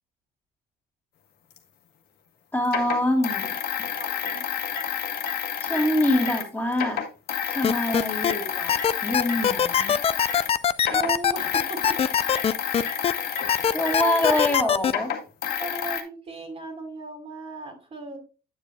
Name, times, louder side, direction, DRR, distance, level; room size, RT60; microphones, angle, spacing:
sound 1, 1.6-1.7 2.6-6.5 6.7-10.5 10.8-16.0, left 8 dB, 65° left, 1.5 m, -30 dB
voice 1, 2.5-3.9 5.6-7.0 7.5-9.9 13.7-15.1, left 1 dB, 10° left, 0 dB, 2.3 m, -25 dB
voice 2, 4.0-4.4 10.9-12.0 13.9-14.7 15.6-18.2, right 2 dB, 35° right, 4 dB, 2.6 m, -34 dB
sound 2, 7.6-8.3 8.7-13.1 13.5-14.9, left 8 dB, 35° left, 0.4 m, -21 dB
8.7 x 7.3 x 2.3 m, 0.32 s
cardioid pair, 110°, 17 cm